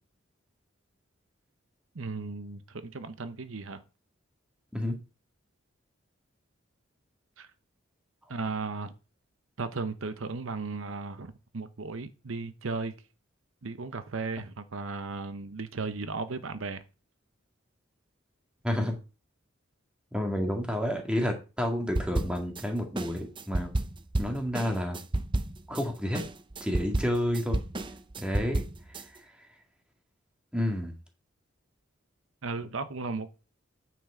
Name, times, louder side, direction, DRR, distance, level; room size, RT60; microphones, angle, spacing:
voice 1, 1.9-3.8 7.4-7.5 8.3-8.9 9.6-12.9 13.6-16.8 32.4-33.3, right 4 dB, 75° right, 0.8 m, -35 dB
voice 2, 18.6-18.9 20.1-23.7 24.2-25.0 25.7-26.2 26.6-27.6 28.2-29.5 30.5-31.0, equal, 5° right, 1.8 m, -30 dB
sound 1, 22.0-22.6 23.0-25.8 26.1-29.0, right 2 dB, 25° right, 0.6 m, -31 dB
9.0 x 6.1 x 4.9 m
head